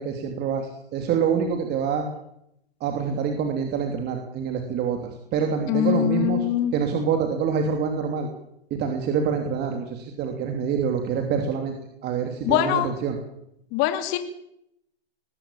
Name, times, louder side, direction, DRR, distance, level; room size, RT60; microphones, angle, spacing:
voice 1, 0.0-2.1 2.8-6.5 6.7-8.3 8.7-11.7 12.0-13.2, right 6 dB, 30° right, 4 dB, 3.1 m, -26 dB
voice 2, 5.7-6.7 12.4-12.9 13.7-14.2, left 12 dB, 40° left, 8 dB, 2.7 m, -23 dB
21.0 x 15.5 x 8.8 m, 0.79 s
hypercardioid pair, 125°, 31 cm